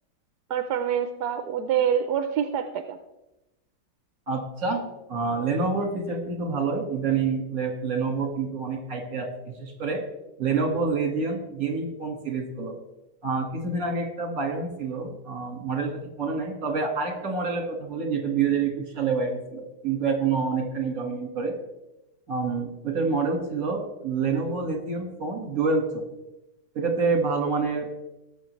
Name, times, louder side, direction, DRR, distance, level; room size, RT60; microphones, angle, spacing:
voice 1, 0.5-3.0, right 8 dB, 85° right, 8 dB, 1.2 m, -26 dB
voice 2, 4.3-10.0 10.4-12.7 13.2-21.5 22.3-26.0 26.7-27.9, right 4 dB, 60° right, 3 dB, 2.2 m, -27 dB
19.0 x 6.5 x 3.2 m, 0.96 s
omnidirectional pair, 1.7 m